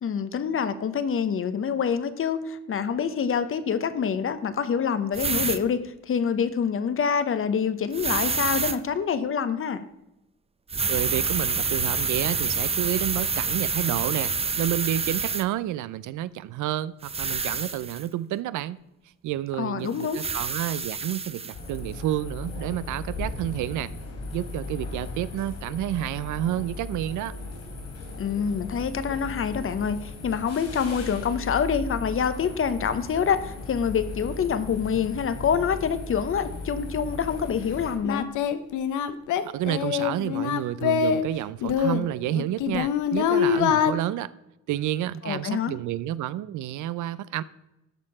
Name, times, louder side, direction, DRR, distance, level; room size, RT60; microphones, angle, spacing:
voice 1, 0.0-9.9 19.6-20.2 28.2-38.3 45.2-45.7, left 7 dB, 45° left, 0.8 m, -26 dB
sound 1, 5.1-5.6 7.9-8.8 10.7-15.4 17.0-18.0 19.9-21.6, right 4 dB, 20° right, 0.6 m, -27 dB
voice 2, 10.9-18.8 19.2-23.9 24.3-27.3 39.4-44.3 44.7-47.4, right 13 dB, 75° right, 0.5 m, -30 dB
sound 2, 21.5-37.9, left 3 dB, 60° left, 3.4 m, -37 dB
Singing, 37.4-37.5 38.0-41.2 41.6-43.9, left 8 dB, 85° left, 0.7 m, -24 dB
13.0 x 4.5 x 4.8 m
cardioid pair, 90°, 30 cm